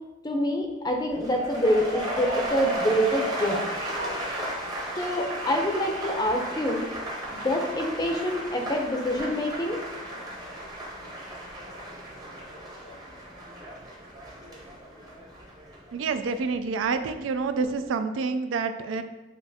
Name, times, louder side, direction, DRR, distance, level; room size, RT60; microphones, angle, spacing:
voice 1, 0.2-3.6 5.0-6.9 7.3-9.8, equal, 20° left, 2 dB, 0.5 m, -26 dB
sound 1, 1.1-17.2 17.5-17.9, right 1 dB, 20° right, 0.8 m, -35 dB
voice 2, 15.9-19.0, right 4 dB, 90° right, 10 dB, 0.3 m, -28 dB
6.7 x 2.5 x 2.7 m, 1.1 s
head